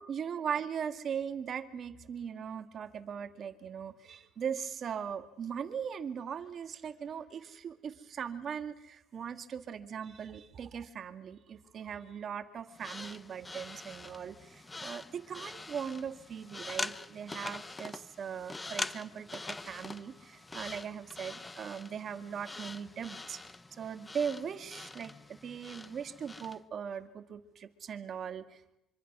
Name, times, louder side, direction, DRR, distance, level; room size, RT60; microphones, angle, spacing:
voice 1, 0.0-23.4 23.7-28.8, right 7 dB, 40° right, 10 dB, 2.0 m, -39 dB
sound 1, 12.7-26.6, left 2 dB, 15° left, 0.8 m, -44 dB
26.0 x 25.5 x 6.2 m, 0.89 s
cardioid pair, 130°, 0 cm